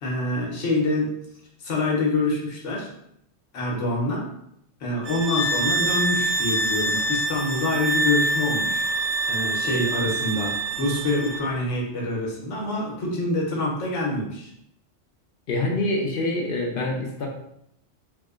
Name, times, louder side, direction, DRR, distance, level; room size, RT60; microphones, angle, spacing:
voice 1, 0.0-1.1 1.6-2.9 3.5-4.3 4.8-8.9 9.3-14.5, left 2 dB, 85° left, -2 dB, 1.2 m, -26 dB
sound 1, 5.0-11.4, right 2 dB, 75° right, 1.0 m, -25 dB
voice 2, 15.5-17.3, left 2 dB, 60° left, 0 dB, 0.7 m, -25 dB
3.5 x 2.7 x 2.4 m, 0.75 s
omnidirectional pair, 1.2 m